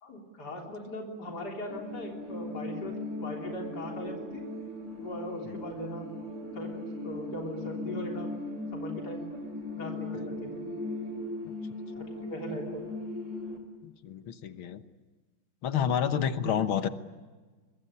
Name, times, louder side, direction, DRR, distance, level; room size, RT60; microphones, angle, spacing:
voice 1, 0.0-4.5 5.0-6.1 6.5-8.3 8.7-9.2 9.7-10.6 12.0-12.9 16.1-16.5, left 1 dB, 50° left, 0 dB, 4.1 m, -39 dB
sound 1, 1.7-13.6, left 2 dB, 55° right, 4.5 m, -38 dB
voice 2, 13.8-14.8 15.6-16.9, left 8 dB, 75° left, 10 dB, 2.0 m, -29 dB
25.0 x 22.5 x 9.8 m, 1.3 s
omnidirectional pair, 2.3 m